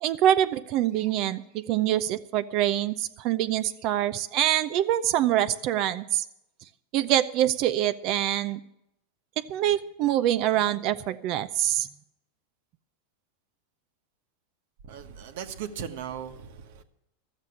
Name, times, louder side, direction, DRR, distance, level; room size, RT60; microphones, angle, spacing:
voice 1, 0.0-6.2 6.9-8.6 9.5-11.9, right 12 dB, 45° right, 0.5 m, -25 dB
voice 2, 14.8-16.8, right 8 dB, 70° right, 1.3 m, -38 dB
13.0 x 7.4 x 9.7 m
supercardioid pair, 145°, 0 cm